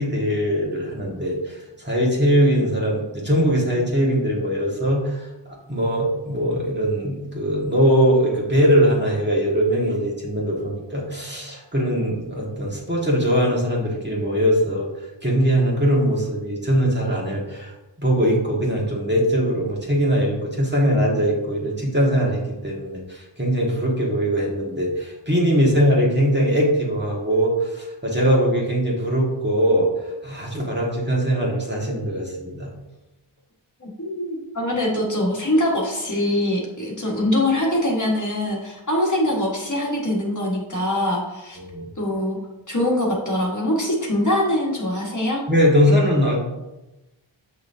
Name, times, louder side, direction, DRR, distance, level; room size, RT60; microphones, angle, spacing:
voice 1, 0.0-14.9 15.2-17.7 18.0-29.9 30.2-32.7 41.6-41.9 45.5-46.4, equal, 20° right, -4 dB, 1.8 m, -21 dB
voice 2, 33.8-41.6 42.0-42.4 42.7-45.4, left 1 dB, 40° left, -3 dB, 1.6 m, -23 dB
7.6 x 5.9 x 2.8 m, 1.0 s
wide cardioid pair, 70°, 48 cm